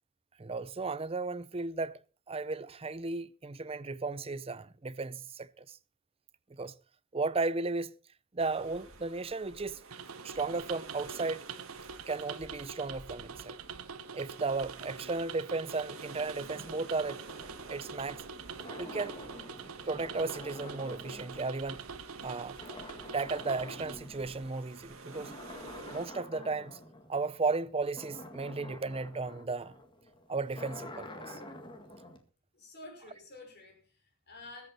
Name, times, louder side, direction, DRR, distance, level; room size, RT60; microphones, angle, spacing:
voice 1, 0.4-2.0 2.3-5.8 6.5-6.7 7.1-8.0 8.3-9.8 10.2-11.5 12.1-13.6 14.1-17.2 17.7-18.2 18.8-19.2 19.9-21.8 22.2-22.6 23.1-25.3 25.9-26.8 27.1-29.8 30.3-31.4, right 3 dB, 25° right, 0.6 m, -35 dB
sound 1, 8.4-26.1, right 3 dB, 70° right, 2.3 m, -51 dB
sound 2, 9.9-24.0, right 6 dB, 90° right, 0.8 m, -45 dB
sound 3, 15.9-22.3 22.6-24.6 25.0-32.2, left 1 dB, 20° left, 1.9 m, -49 dB
voice 2, 32.5-34.7, left 2 dB, 50° left, 5.4 m, -50 dB
21.0 x 8.4 x 4.2 m
head